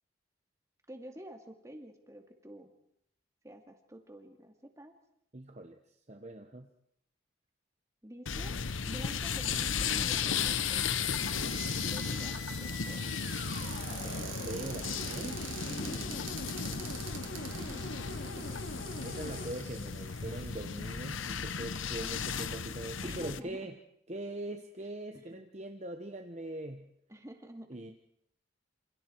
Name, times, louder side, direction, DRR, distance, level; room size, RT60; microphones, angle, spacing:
voice 1, 0.9-2.7 3.4-4.9 8.0-8.5 8.9-11.0 11.3-13.1 15.6-16.4 17.2-18.6 23.0-23.8 25.1-25.5 27.1-27.8, equal, 15° right, 4 dB, 2.3 m, -49 dB
voice 2, 5.3-5.8 6.1-6.7 13.9-15.4 19.0-23.7 24.1-26.9 27.7-27.9, right 1 dB, 35° right, 5 dB, 1.1 m, -42 dB
sound 1, 8.3-23.4, left 6 dB, 85° left, 1.0 m, -35 dB
sound 2, 10.5-19.5, left 2 dB, 60° left, 3.2 m, -44 dB
Cupboard open or close, 11.4-21.8 22.4-22.5 22.8-23.1, right 8 dB, 85° right, 3.4 m, -47 dB
27.5 x 27.5 x 4.6 m, 0.72 s
head